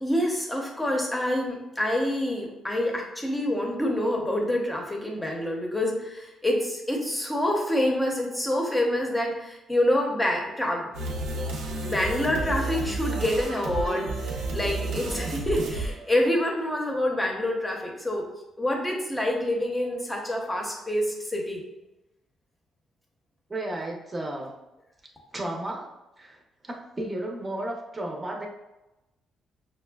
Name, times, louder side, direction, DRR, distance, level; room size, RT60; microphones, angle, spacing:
voice 1, 0.0-10.9 11.8-18.2 18.6-21.6, left 1 dB, 10° left, 0 dB, 0.8 m, -27 dB
sound 1, 10.9-16.7, right 2 dB, 85° right, 0.7 m, -31 dB
voice 2, 23.5-24.5 25.3-25.9 26.2-26.4 26.6-28.5, right 1 dB, 20° right, 0 dB, 0.7 m, -33 dB
5.8 x 2.1 x 2.3 m, 0.97 s
cardioid pair, 90°, 0 cm